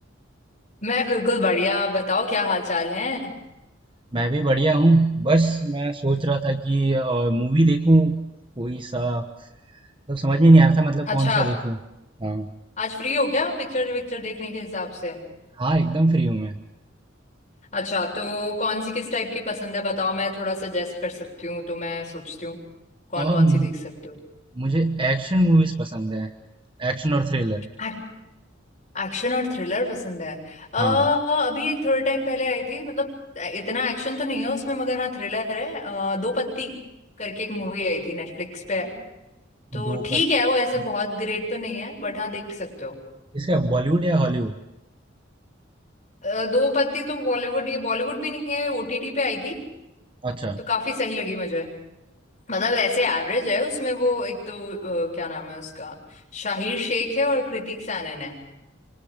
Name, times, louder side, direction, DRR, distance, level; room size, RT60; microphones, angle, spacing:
voice 1, 0.8-3.3 11.1-11.5 12.8-15.2 17.7-22.6 23.1-23.8 24.0-24.2 27.8-28.0 28.9-36.8 37.2-38.9 39.7-43.0 46.2-49.6 50.6-51.7 52.5-56.0 56.3-58.4, left 2 dB, 35° left, -3 dB, 7.6 m, -26 dB
voice 2, 4.1-8.3 8.6-9.3 10.1-11.8 12.2-12.5 15.6-16.6 23.2-23.7 24.5-26.3 26.8-27.7 30.8-31.0 39.7-40.2 43.3-44.5 50.2-50.6, right 2 dB, 25° right, 6 dB, 1.1 m, -21 dB
27.0 x 26.0 x 5.2 m, 0.94 s
head